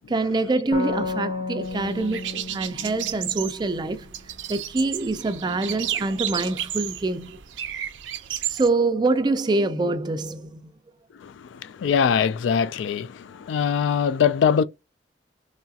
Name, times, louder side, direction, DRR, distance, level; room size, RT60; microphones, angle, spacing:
voice 1, 0.1-4.1 4.5-7.4 8.5-10.7, right 2 dB, 25° right, 0.4 m, -25 dB
sound 1, 0.7-4.2, left 3 dB, 35° left, 0.8 m, -33 dB
sound 2, 1.6-8.7, right 11 dB, 90° right, 0.5 m, -33 dB
voice 2, 11.2-14.6, left 7 dB, 90° left, 0.3 m, -22 dB
3.2 x 2.4 x 2.7 m
head